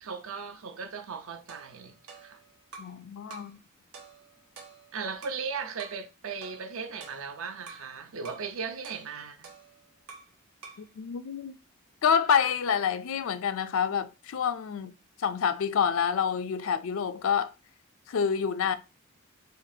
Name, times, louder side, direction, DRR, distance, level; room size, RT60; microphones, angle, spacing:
voice 1, 0.0-2.4 4.9-9.5, right 5 dB, 70° right, 0.6 m, -37 dB
sound 1, 1.5-3.0 3.3-3.6 3.9-5.5 5.8-6.0 6.4-7.9 8.2-8.5 8.8-10.4 10.6-10.9, right 4 dB, 85° right, 1.0 m, -49 dB
voice 2, 2.8-3.6 10.8-11.5 12.0-14.9 15.2-17.5 18.1-18.7, left 7 dB, 65° left, 0.4 m, -27 dB
5.1 x 2.4 x 2.7 m
head